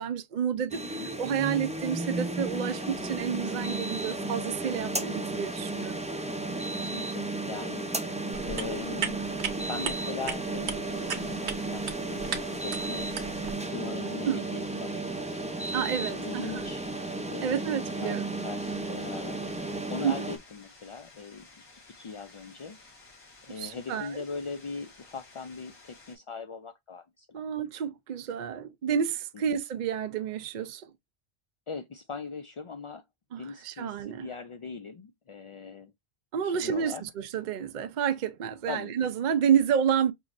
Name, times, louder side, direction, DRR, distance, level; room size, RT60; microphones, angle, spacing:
voice 1, 0.0-6.0 14.2-14.4 15.7-16.7 17.4-18.2 20.0-20.1 23.5-24.2 27.3-30.9 33.3-34.3 36.3-40.1, right 8 dB, 55° right, 0.6 m, -30 dB
sound 1, 0.7-20.4, right 2 dB, 10° right, 0.4 m, -34 dB
voice 2, 6.8-7.9 8.4-9.2 9.7-13.1 13.6-15.0 16.0-16.9 17.3-17.6 18.0-21.5 21.9-22.8 23.5-27.4 29.3-29.4 31.7-33.0 33.4-35.9 36.4-37.0 38.7-38.9, left 5 dB, 55° left, 0.3 m, -40 dB
sound 2, 8.3-13.5, right 7 dB, 85° right, 1.1 m, -37 dB
sound 3, 10.8-26.2, left 3 dB, 75° left, 2.8 m, -54 dB
5.6 x 3.0 x 2.5 m
omnidirectional pair, 1.1 m